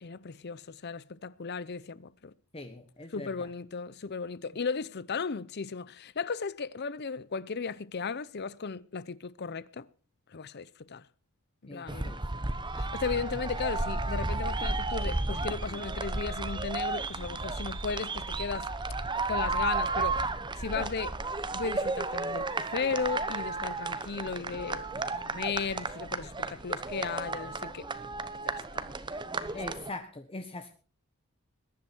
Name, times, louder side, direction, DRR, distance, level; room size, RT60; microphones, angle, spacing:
voice 1, 0.0-2.3 3.1-9.9 10.3-11.1 11.6-12.1 12.7-18.7 19.3-20.2 20.6-21.2 21.5-24.9 25.2-27.9 28.4-29.0, left 5 dB, 50° left, 0.7 m, -35 dB
voice 2, 2.5-3.3 11.7-12.2 29.5-30.7, left 2 dB, 25° left, 1.2 m, -41 dB
sound 1, 11.9-29.9, right 3 dB, 20° right, 1.0 m, -33 dB
21.0 x 11.0 x 4.5 m
head